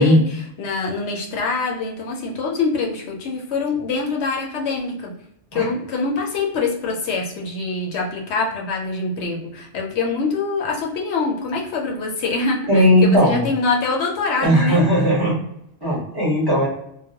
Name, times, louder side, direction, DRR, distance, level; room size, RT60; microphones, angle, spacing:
voice 1, 0.0-5.1 5.5-14.8, left 4 dB, 75° left, 0 dB, 0.8 m, -24 dB
voice 2, 12.7-13.4 14.4-15.4 15.8-16.7, equal, 25° right, -7 dB, 0.9 m, -16 dB
2.3 x 2.1 x 2.7 m, 0.74 s
omnidirectional pair, 1.2 m